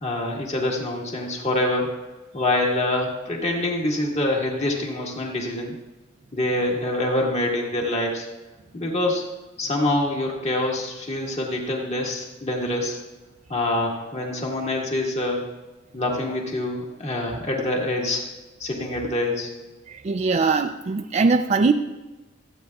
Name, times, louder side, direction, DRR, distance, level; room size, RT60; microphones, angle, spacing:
voice 1, 0.0-1.9 2.3-5.8 6.3-8.3 8.7-9.2 9.6-13.0 13.5-15.4 15.9-18.2 18.6-19.5, left 1 dB, 35° left, -1 dB, 1.8 m, -25 dB
voice 2, 19.9-21.7, right 4 dB, 35° right, 6 dB, 0.4 m, -21 dB
26.5 x 8.9 x 2.3 m, 1.1 s
head